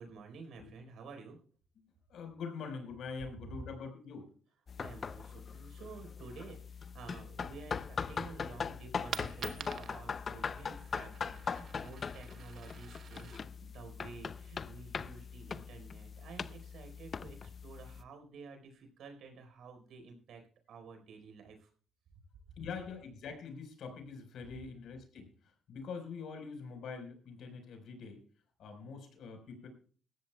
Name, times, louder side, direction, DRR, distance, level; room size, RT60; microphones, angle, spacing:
voice 1, 0.0-1.4 4.8-20.4 20.7-21.7, right 4 dB, 75° right, 5 dB, 4.2 m, -51 dB
voice 2, 1.8-4.3 22.6-28.2 28.6-29.7, left 5 dB, 70° left, 5 dB, 4.6 m, -44 dB
sound 1, 4.7-18.0, left 6 dB, 45° left, 0.6 m, -41 dB
Coin (dropping), 9.1-14.8, right 7 dB, 60° right, 0.9 m, -48 dB
19.0 x 14.0 x 2.3 m, 0.42 s
cardioid pair, 90°, 0 cm